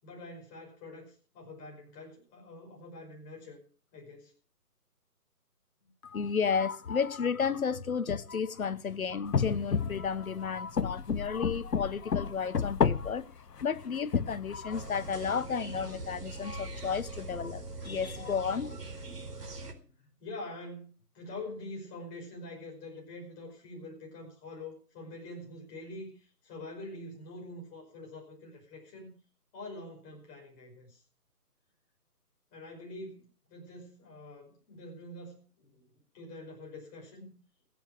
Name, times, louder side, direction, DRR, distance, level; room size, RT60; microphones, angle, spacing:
voice 1, 0.0-3.6 3.9-4.3 5.8-5.9 19.9-20.0 20.2-29.1 29.5-31.0 32.5-35.9 36.1-37.4, left 2 dB, 15° left, 5.5 m, -45 dB
voice 2, 6.0-13.2 13.6-18.8, left 6 dB, 60° left, 1.4 m, -32 dB
sound 1, 9.3-10.3 10.8-13.2 13.6-15.1, left 6 dB, 80° left, 1.1 m, -30 dB
sound 2, 14.7-19.7, right 2 dB, 80° right, 4.4 m, -42 dB
21.0 x 8.3 x 6.6 m
figure-of-eight pair, 155°, 47 cm